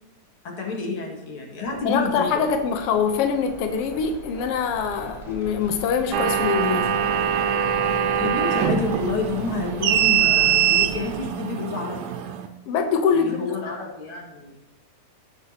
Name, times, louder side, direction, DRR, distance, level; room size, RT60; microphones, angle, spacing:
voice 1, 0.4-2.5 8.2-12.3 13.1-14.6, left 3 dB, 50° left, -1 dB, 2.4 m, -29 dB
sound 1, 1.6-11.2, right 1 dB, 10° right, 3.0 m, -40 dB
voice 2, 1.8-7.0 12.7-13.5, left 6 dB, 80° left, 5 dB, 1.3 m, -24 dB
sound 2, 6.1-12.5, right 9 dB, 80° right, 2.2 m, -23 dB
17.5 x 7.2 x 2.8 m, 0.96 s
omnidirectional pair, 3.5 m